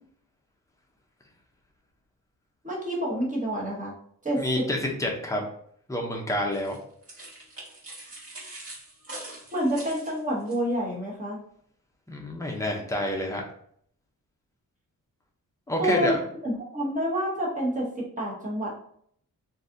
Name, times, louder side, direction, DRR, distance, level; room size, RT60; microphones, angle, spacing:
voice 1, 2.6-3.9 4.2-4.4 9.5-11.4 15.8-16.2 16.4-18.7, equal, 25° right, -4 dB, 0.9 m, -28 dB
voice 2, 4.4-5.4 5.9-6.8 12.1-13.4 15.7-16.2, left 1 dB, 10° left, 0 dB, 0.6 m, -28 dB
sound 1, 6.5-10.6, right 2 dB, 40° right, 1.5 m, -43 dB
3.8 x 2.6 x 2.5 m, 0.64 s
wide cardioid pair, 160°, 34 cm